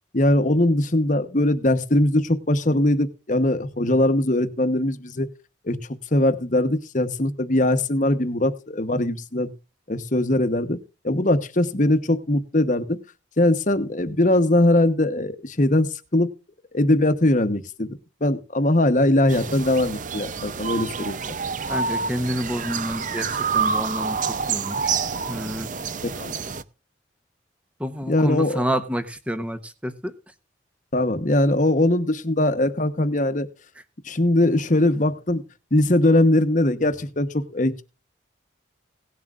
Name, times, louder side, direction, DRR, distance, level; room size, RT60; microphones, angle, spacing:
voice 1, 0.1-5.3 5.6-5.8 6.1-9.5 9.9-10.8 11.0-13.0 13.4-16.3 16.7-17.9 18.2-21.2 26.0-26.4 28.1-28.6 30.9-33.5 34.0-35.4 35.7-37.8, left 1 dB, 40° left, 1.1 m, -21 dB
sound 1, 19.3-26.6, right 5 dB, 40° right, 0.6 m, -28 dB
voice 2, 21.7-24.9 25.3-25.7 27.8-30.1, equal, 5° right, 1.0 m, -29 dB
18.0 x 11.0 x 2.5 m
head